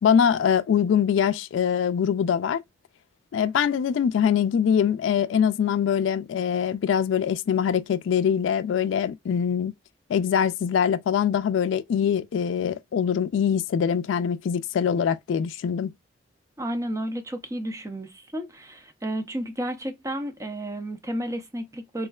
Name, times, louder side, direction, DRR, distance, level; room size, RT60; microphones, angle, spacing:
voice 1, 0.0-2.6 3.3-9.7 10.1-15.9, left 8 dB, 85° left, 0.3 m, -23 dB
voice 2, 16.6-22.1, right 1 dB, 15° right, 0.5 m, -32 dB
3.6 x 3.1 x 2.3 m
head